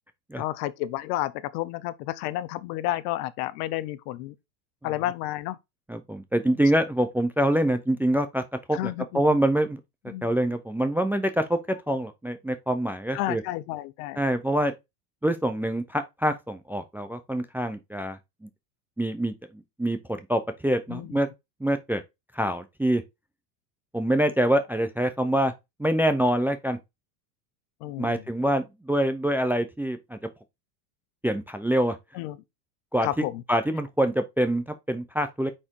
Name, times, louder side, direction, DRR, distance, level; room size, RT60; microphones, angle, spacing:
voice 1, 0.4-4.4 4.8-5.6 8.7-9.3 10.1-10.3 13.1-14.2 20.9-21.2 27.8-28.2 32.1-32.4 33.0-33.4, left 15 dB, 65° left, 0.8 m, -31 dB
voice 2, 5.9-8.4 8.7-9.8 10.2-11.6 11.9-13.4 14.2-14.7 15.2-18.2 19.0-21.3 21.6-22.0 22.3-23.0 23.9-25.5 25.8-26.8 28.0-30.2 31.2-32.0 32.9-33.1 33.5-35.5, right 1 dB, 5° right, 0.5 m, -25 dB
4.9 x 4.5 x 4.5 m
supercardioid pair, 115°, 50 cm